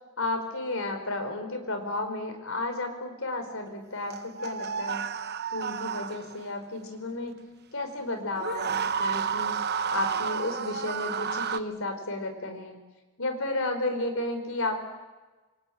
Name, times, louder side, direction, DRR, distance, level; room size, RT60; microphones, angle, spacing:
voice 1, 0.2-5.0 5.5-9.6 9.9-12.8 13.2-14.8, left 2 dB, 65° left, 7 dB, 4.9 m, -33 dB
sound 1, 4.1-6.5 8.4-11.6, right 6 dB, 50° right, 1.0 m, -31 dB
28.0 x 22.5 x 8.9 m, 1.2 s
head